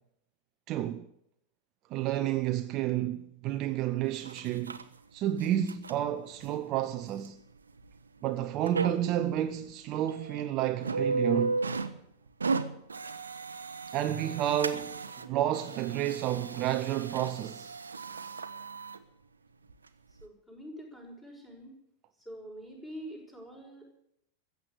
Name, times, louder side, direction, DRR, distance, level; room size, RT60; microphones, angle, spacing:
voice 1, 0.7-1.1 1.9-4.8 5.1-7.4 8.2-11.6 13.9-17.8, right 12 dB, 35° right, 0.7 m, -30 dB
sound 1, 4.1-4.8 5.3-6.0 6.4-6.5 7.3-7.4 7.8-7.9 8.7-9.2 9.7-9.8 10.1-10.4 10.8-12.0 12.3-15.3 15.5-19.0 19.7-19.8 20.2-20.3, right 4 dB, 75° right, 0.8 m, -35 dB
voice 2, 20.1-21.8 22.2-24.0, equal, 10° left, 5.7 m, -46 dB
14.5 x 8.2 x 9.6 m
figure-of-eight pair, 90°, 0 cm